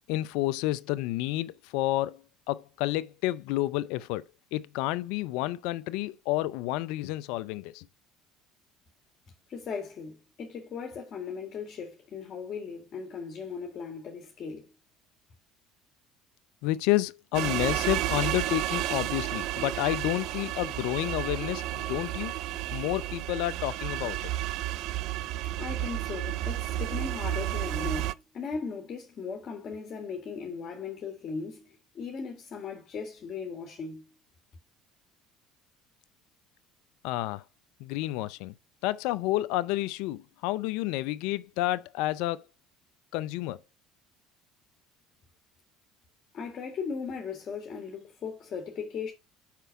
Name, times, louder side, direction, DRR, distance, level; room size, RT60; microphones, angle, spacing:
voice 1, 0.1-2.2 2.5-4.2 4.5-7.9 16.6-22.3 22.7-24.3 37.0-37.4 37.8-38.5 38.8-42.4 43.1-43.6, left 16 dB, 75° left, 0.4 m, -30 dB
voice 2, 9.5-14.7 25.6-34.0 46.3-49.1, left 5 dB, 50° left, 2.0 m, -38 dB
sound 1, 17.3-28.1, right 14 dB, 70° right, 0.4 m, -32 dB
5.9 x 4.6 x 5.7 m
hypercardioid pair, 70°, 0 cm